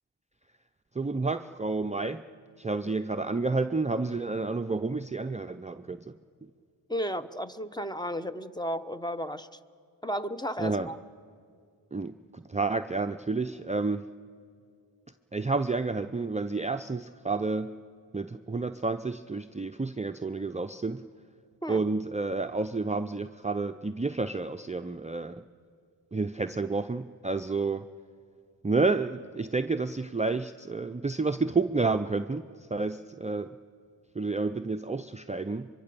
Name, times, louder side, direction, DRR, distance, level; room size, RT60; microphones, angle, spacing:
voice 1, 0.9-2.2 2.6-6.0 10.6-10.9 11.9-14.1 15.3-17.7 18.1-21.0 21.7-25.4 26.1-27.9 28.6-33.6 34.1-35.7, right 3 dB, 15° right, 8 dB, 0.5 m, -30 dB
voice 2, 6.9-9.5 10.0-11.0 21.6-21.8, equal, 10° left, 11 dB, 0.9 m, -33 dB
23.5 x 23.5 x 6.8 m, 2.2 s
cardioid pair, 40°, 45 cm